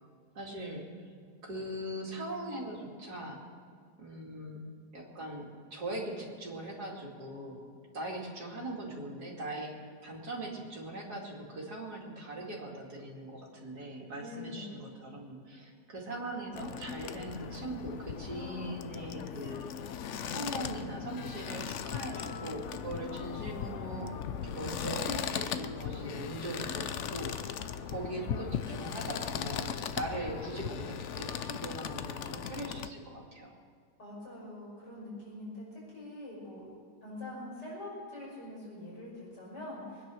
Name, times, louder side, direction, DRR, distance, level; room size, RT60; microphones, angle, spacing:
voice 1, 0.3-0.8 1.4-3.4 4.0-4.6 4.9-7.7 7.9-19.7 20.3-24.1 24.4-33.6, right 1 dB, 70° right, -1 dB, 3.0 m, -40 dB
voice 2, 14.2-14.9 34.0-36.6 37.0-40.0, left 2 dB, 85° left, -5 dB, 6.5 m, -44 dB
sound 1, 16.5-32.9, left 8 dB, 60° left, 0.8 m, -38 dB
22.5 x 10.0 x 6.3 m, 2.1 s
omnidirectional pair, 1.8 m